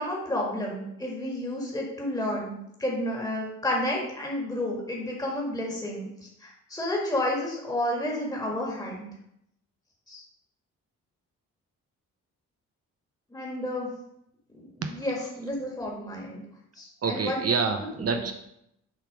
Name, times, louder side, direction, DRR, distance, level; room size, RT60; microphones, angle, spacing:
voice 1, 0.0-6.1 6.4-9.1 10.1-10.2 13.3-13.9 14.5-16.4 16.8-17.4 18.0-18.2, left 1 dB, 10° left, -3 dB, 1.9 m, -31 dB
voice 2, 17.0-18.3, right 5 dB, 45° right, 6 dB, 0.7 m, -27 dB
6.8 x 2.9 x 4.9 m, 0.79 s
supercardioid pair, 55°, 32 cm